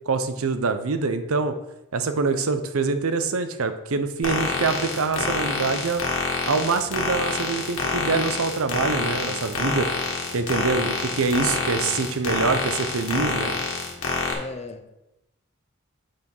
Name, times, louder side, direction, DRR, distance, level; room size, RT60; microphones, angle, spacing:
voice 1, 0.1-1.5 1.9-6.0 6.5-9.9 10.3-13.5, right 4 dB, 85° right, 9 dB, 0.7 m, -25 dB
sound 1, 4.2-14.3, left 4 dB, 75° left, 1.6 m, -27 dB
voice 2, 14.3-14.9, left 2 dB, 30° left, 8 dB, 0.6 m, -36 dB
7.6 x 4.7 x 5.4 m, 0.91 s
head